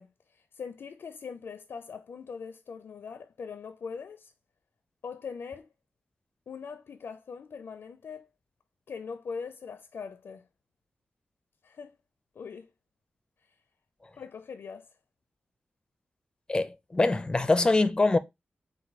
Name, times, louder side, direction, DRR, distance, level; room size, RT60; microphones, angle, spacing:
voice 1, 0.0-4.3 5.0-5.7 6.5-8.3 8.9-10.4 11.6-12.0 12.3-12.7 14.1-14.9, left 5 dB, 75° left, 0.5 m, -41 dB
voice 2, 16.5-18.2, left 2 dB, 20° left, 0.5 m, -24 dB
4.2 x 2.3 x 4.6 m
wide cardioid pair, 80°, 4 cm